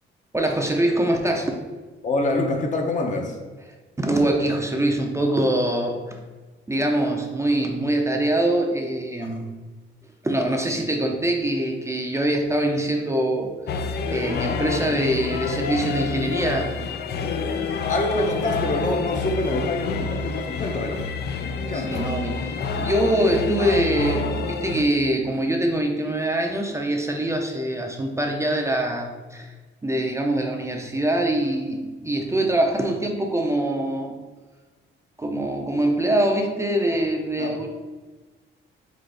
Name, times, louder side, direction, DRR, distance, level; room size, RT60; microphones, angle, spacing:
voice 1, 0.3-1.6 4.0-6.2 6.7-9.5 10.2-13.5 14.1-16.8 21.7-29.5 29.8-34.2 35.2-37.7, right 1 dB, 15° right, 2 dB, 0.5 m, -24 dB
voice 2, 2.0-3.4 17.9-21.1 21.5-22.1 37.4-37.6, left 2 dB, 40° left, 2 dB, 0.8 m, -26 dB
sound 1, 13.7-24.8, left 4 dB, 55° left, 0.4 m, -28 dB
3.9 x 3.7 x 3.4 m, 1.3 s
cardioid pair, 90°, 20 cm